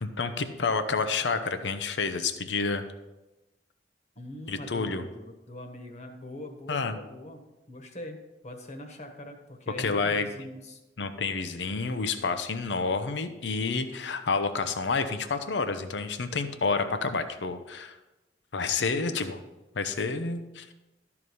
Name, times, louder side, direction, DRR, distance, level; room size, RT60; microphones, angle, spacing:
voice 1, 0.0-2.8 4.5-5.1 6.7-7.0 9.8-10.3 11.0-18.0 18.5-19.4 19.8-20.7, left 4 dB, 90° left, 9 dB, 0.7 m, -29 dB
voice 2, 4.1-10.8 18.9-19.4, left 1 dB, 40° left, 4 dB, 1.3 m, -43 dB
12.5 x 4.8 x 5.4 m, 1.0 s
head